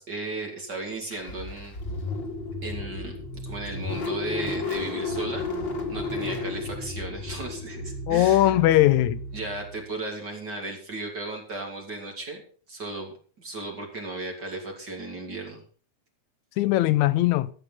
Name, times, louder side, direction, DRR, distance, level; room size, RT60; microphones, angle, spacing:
voice 1, 0.0-1.8 2.6-3.2 3.4-5.6 5.9-8.5 9.3-12.4 12.7-15.6, right 2 dB, 35° right, 3.1 m, -35 dB
Car / Engine starting, 1.1-9.9, left 2 dB, 40° left, 2.7 m, -33 dB
voice 2, 8.1-9.2 16.6-17.5, left 15 dB, 80° left, 2.0 m, -20 dB
13.5 x 9.0 x 5.7 m
omnidirectional pair, 3.4 m